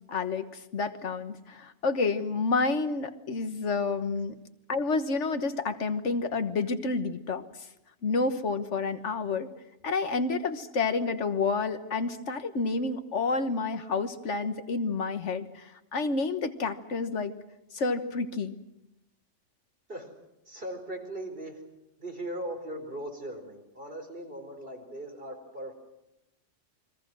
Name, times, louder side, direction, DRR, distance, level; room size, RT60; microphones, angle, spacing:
voice 1, 0.1-4.3 4.7-7.4 8.0-9.5 9.8-17.3 17.7-18.6, left 4 dB, 85° left, 9 dB, 1.7 m, -29 dB
voice 2, 20.4-21.6 22.0-25.8, right 1 dB, 50° right, 3 dB, 4.7 m, -39 dB
29.5 x 23.0 x 6.2 m, 0.91 s
omnidirectional pair, 1.2 m